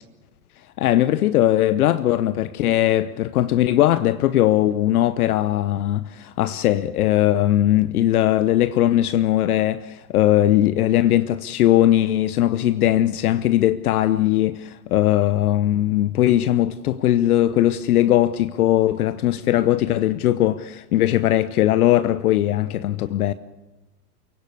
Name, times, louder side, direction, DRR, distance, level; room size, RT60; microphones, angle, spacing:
voice 1, 0.8-23.3, left 13 dB, 65° left, 1.0 m, -19 dB
29.0 x 16.5 x 8.3 m
hypercardioid pair, 95°, 48 cm